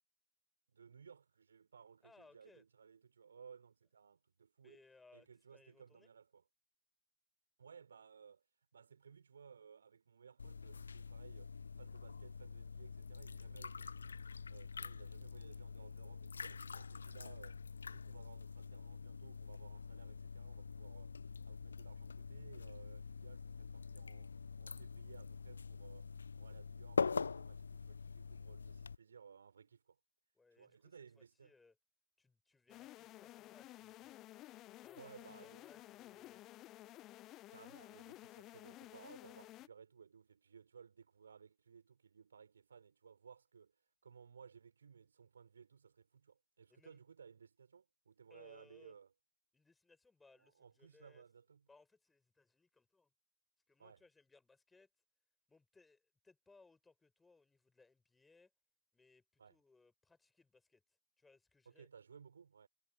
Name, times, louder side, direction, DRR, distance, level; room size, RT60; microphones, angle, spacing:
voice 1, 0.7-4.8 5.1-6.4 7.6-8.4 8.7-14.2 14.5-17.6 17.8-21.2 21.5-30.0 30.5-31.5 35.0-35.6 37.5-43.8 44.0-49.1 50.4-51.7 53.8-54.0 59.4-59.6 61.6-62.7, right 6 dB, 70° right, 4.5 m, -60 dB
voice 2, 2.0-2.6 4.6-6.1 30.3-31.8 32.2-34.1 34.8-36.4 46.7-47.0 48.3-48.9 49.5-51.2 51.7-53.1 53.7-54.9 55.5-58.5 58.9-60.8 61.2-61.9, left 3 dB, 10° left, 7.1 m, -67 dB
sound 1, 10.4-29.0, left 5 dB, 75° left, 0.7 m, -45 dB
sound 2, 32.7-39.7, left 16 dB, 35° left, 0.4 m, -55 dB
figure-of-eight pair, 90°, 0 cm